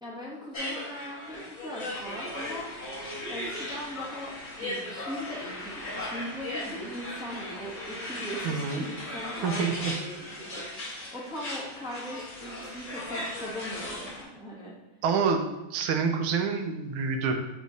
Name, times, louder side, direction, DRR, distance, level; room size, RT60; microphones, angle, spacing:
voice 1, 0.0-2.7 3.3-4.3 4.6-10.6 11.1-14.7, equal, 5° right, -6 dB, 0.5 m, -39 dB
sound 1, 0.5-14.2, left 1 dB, 40° left, 1.7 m, -37 dB
voice 2, 8.4-8.8 9.4-9.9 15.0-17.3, right 5 dB, 80° right, 4 dB, 1.4 m, -27 dB
8.0 x 3.1 x 3.9 m, 0.98 s
omnidirectional pair, 2.4 m